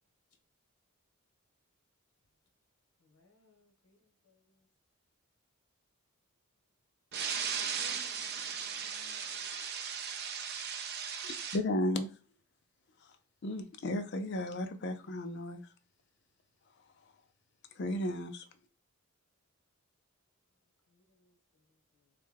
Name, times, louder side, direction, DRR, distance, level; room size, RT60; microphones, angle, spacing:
voice 1, 3.0-4.7 20.9-22.1, left 3 dB, 85° left, 1.0 m, -71 dB
voice 2, 7.1-11.6, right 7 dB, 45° right, 0.6 m, -37 dB
voice 3, 11.5-12.1 13.0-13.1 13.4-15.6 17.8-18.4, left 1 dB, 50° left, 0.4 m, -34 dB
3.3 x 2.2 x 3.3 m
head